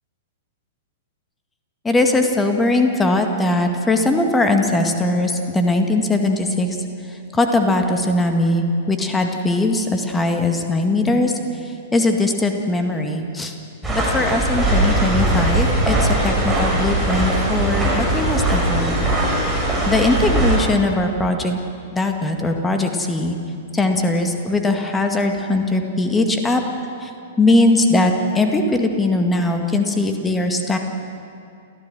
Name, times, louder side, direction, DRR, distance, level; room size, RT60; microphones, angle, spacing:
voice 1, 1.8-6.8 7.1-13.5 13.9-19.1 19.9-21.6 21.9-23.4 23.7-26.6 27.0-27.1 27.4-30.8, left 2 dB, 10° left, 4 dB, 2.0 m, -20 dB
sound 1, 13.8-20.6, right 1 dB, 5° right, 6.0 m, -20 dB
29.0 x 14.5 x 6.4 m, 2.5 s
figure-of-eight pair, 105°, 0 cm